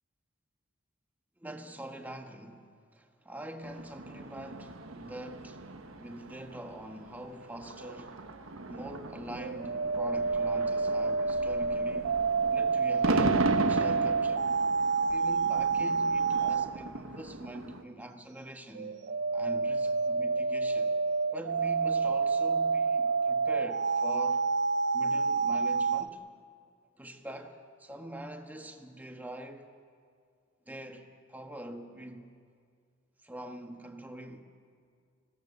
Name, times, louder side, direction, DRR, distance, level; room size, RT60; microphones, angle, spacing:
voice 1, 1.4-5.7 6.0-8.3 8.7-12.2 12.5-14.5 15.1-19.0 19.3-20.9 21.3-24.5 24.9-26.2 27.0-29.8 30.7-32.3 33.2-34.4, right 1 dB, 10° right, 5 dB, 1.3 m, -44 dB
sound 1, 3.6-17.8, right 2 dB, 85° right, 1.3 m, -37 dB
sound 2, 9.4-16.7 18.8-26.1, right 4 dB, 55° right, 0.5 m, -28 dB
25.0 x 17.5 x 6.7 m, 2.1 s
head